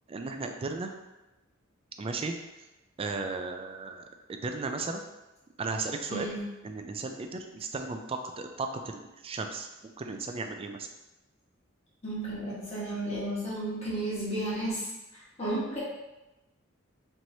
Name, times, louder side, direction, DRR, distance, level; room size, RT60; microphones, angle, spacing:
voice 1, 0.1-0.9 2.0-2.3 3.0-5.0 5.6-6.3 6.6-9.7 10.0-10.9, right 3 dB, 25° right, 5 dB, 0.3 m, -35 dB
voice 2, 6.1-6.4 12.0-14.9 15.4-15.8, right 1 dB, 30° left, -8 dB, 1.4 m, -33 dB
4.5 x 3.0 x 2.7 m, 1.0 s
head